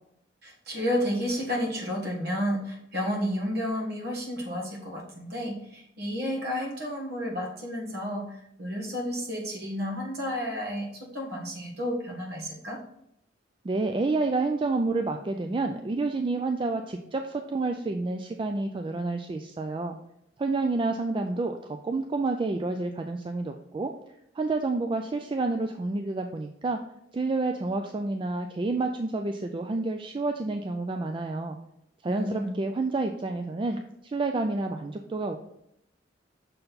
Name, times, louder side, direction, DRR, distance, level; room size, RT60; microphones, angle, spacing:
voice 1, 0.4-12.8 32.1-32.6, equal, 55° right, -1 dB, 1.7 m, -31 dB
voice 2, 13.6-20.0 20.4-23.9 24.4-26.8 27.1-31.6 32.0-35.4, right 3 dB, 25° right, 5 dB, 0.3 m, -29 dB
6.5 x 4.4 x 4.0 m, 0.78 s
head